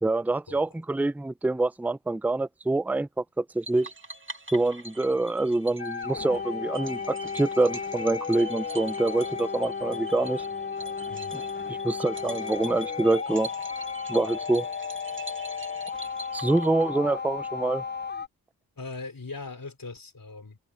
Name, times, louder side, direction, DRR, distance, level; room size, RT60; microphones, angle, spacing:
voice 1, 0.0-3.9 4.5-10.4 11.8-13.5 14.1-14.7 16.3-17.8, right 2 dB, 5° right, 0.5 m, -26 dB
sound 1, 3.7-17.1, right 1 dB, 30° right, 2.5 m, -43 dB
sound 2, 5.8-18.3, left 6 dB, 25° left, 0.8 m, -34 dB
voice 2, 11.1-11.4 18.8-20.6, left 3 dB, 60° left, 3.7 m, -40 dB
cardioid pair, 45°, 38 cm